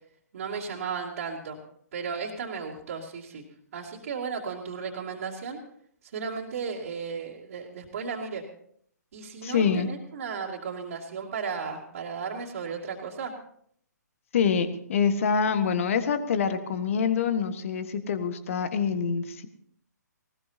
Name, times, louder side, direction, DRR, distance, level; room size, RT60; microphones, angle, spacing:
voice 1, 0.3-1.6 1.9-3.4 3.7-5.6 6.0-8.4 9.1-13.3, right 5 dB, 50° right, -5 dB, 2.7 m, -35 dB
voice 2, 9.4-9.9 14.3-19.5, left 6 dB, 45° left, 10 dB, 1.6 m, -26 dB
20.0 x 19.5 x 2.9 m, 0.65 s
figure-of-eight pair, 130°, 10 cm